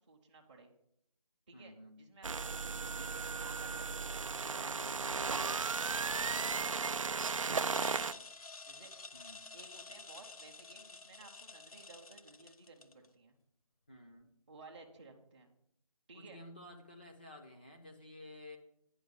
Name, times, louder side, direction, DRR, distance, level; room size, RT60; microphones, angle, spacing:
voice 1, 0.1-0.7 1.5-4.0 4.5-5.6 6.3-8.2 8.6-8.9 9.5-13.3 14.5-15.5 16.1-16.4, right 3 dB, 15° right, -4 dB, 0.7 m, -56 dB
voice 2, 1.5-2.1 4.8-5.2 6.3-6.6 9.1-9.5 13.9-14.3 16.1-18.6, left 1 dB, 15° left, 2 dB, 0.5 m, -53 dB
sound 1, 2.2-8.1, right 5 dB, 60° right, 0.5 m, -35 dB
sound 2, 5.6-13.1, left 3 dB, 75° left, 0.8 m, -52 dB
9.8 x 5.1 x 7.7 m, 0.70 s
figure-of-eight pair, 160°, 19 cm